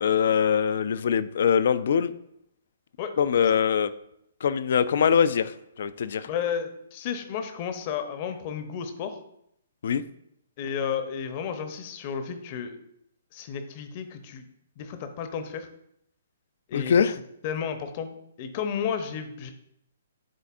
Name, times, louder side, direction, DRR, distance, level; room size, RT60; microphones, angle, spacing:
voice 1, 0.0-2.1 3.2-3.9 4.4-5.5 5.8-6.3 9.8-10.0 16.7-17.1, left 7 dB, 60° left, 14 dB, 0.3 m, -22 dB
voice 2, 6.3-9.2 10.6-12.8 13.3-14.4 14.8-15.7 16.7-17.0 17.4-19.5, left 7 dB, 40° left, 8 dB, 0.7 m, -32 dB
10.5 x 4.0 x 2.5 m, 0.77 s
figure-of-eight pair, 125°, 0 cm